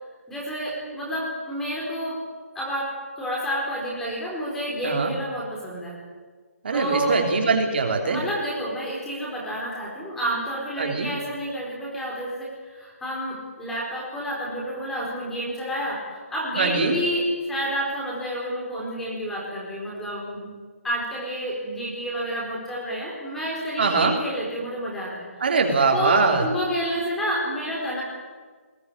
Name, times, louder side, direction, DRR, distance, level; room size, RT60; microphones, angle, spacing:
voice 1, 0.3-2.2 2.5-6.0 6.7-7.2 8.0-20.5 20.8-25.3 25.9-26.1 26.4-28.0, equal, 5° left, -4 dB, 4.3 m, -29 dB
voice 2, 6.6-8.2 10.8-11.1 16.6-16.9 23.8-24.1 25.4-26.5, right 4 dB, 45° right, 3 dB, 3.2 m, -22 dB
21.0 x 17.5 x 9.8 m, 1.5 s
hypercardioid pair, 170°, 8 cm